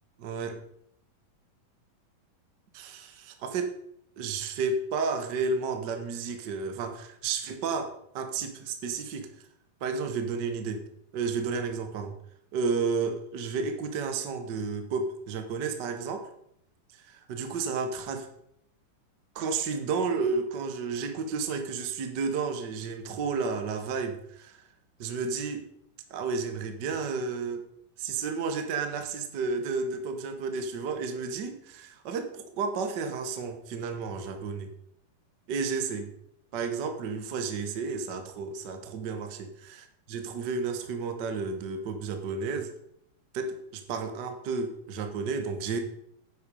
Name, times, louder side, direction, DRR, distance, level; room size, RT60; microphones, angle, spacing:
voice 1, 0.2-0.6 2.7-3.8 4.2-9.3 9.8-10.9 11.1-12.1 12.5-16.3 16.9-18.3 19.3-24.6 25.0-25.6 26.1-27.6 28.0-34.7 35.5-36.1 36.5-42.7 43.3-45.8, right 4 dB, 60° right, 6 dB, 1.1 m, -32 dB
9.9 x 8.0 x 5.3 m, 0.73 s
omnidirectional pair, 3.8 m